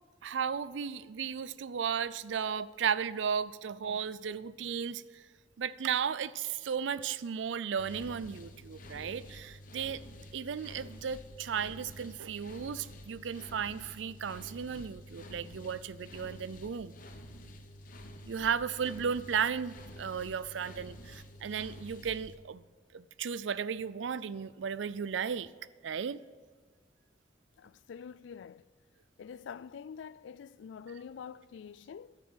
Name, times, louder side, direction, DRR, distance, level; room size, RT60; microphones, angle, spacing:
voice 1, 0.2-5.2 5.6-10.0 10.3-16.9 18.3-22.6 22.9-25.5 25.8-26.2, right 7 dB, 80° right, 0.4 m, -35 dB
sound 1, 7.8-22.3, equal, 45° left, 1.0 m, -49 dB
voice 2, 27.6-28.7 29.2-32.2, left 7 dB, 75° left, 0.3 m, -46 dB
12.5 x 6.9 x 8.0 m
head